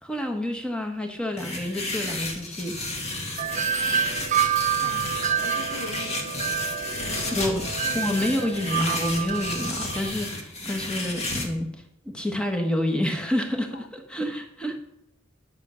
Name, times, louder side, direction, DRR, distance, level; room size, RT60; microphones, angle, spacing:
voice 1, 0.0-2.8 7.0-7.6 7.9-14.8, left 1 dB, 5° left, 1.4 m, -28 dB
sound 1, 1.4-11.5, left 2 dB, 35° left, 1.7 m, -32 dB
Wind chime, 3.4-10.1, right 8 dB, 40° right, 0.7 m, -28 dB
voice 2, 3.8-4.2 4.7-6.5 7.0-8.0 13.7-13.9, left 4 dB, 60° left, 0.5 m, -42 dB
10.5 x 5.8 x 6.4 m
head